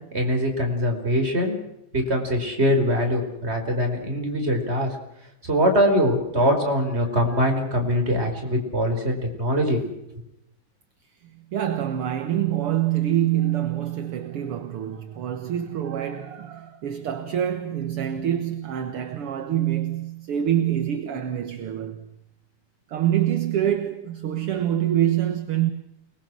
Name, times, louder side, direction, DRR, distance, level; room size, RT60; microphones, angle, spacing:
voice 1, 0.1-1.6 1.9-5.0 5.4-9.9, equal, 20° right, 5.0 m, -23 dB
voice 2, 11.2-22.1 22.9-25.7, right 11 dB, 55° right, 1.8 m, -26 dB
29.0 x 21.0 x 6.2 m
omnidirectional pair, 3.7 m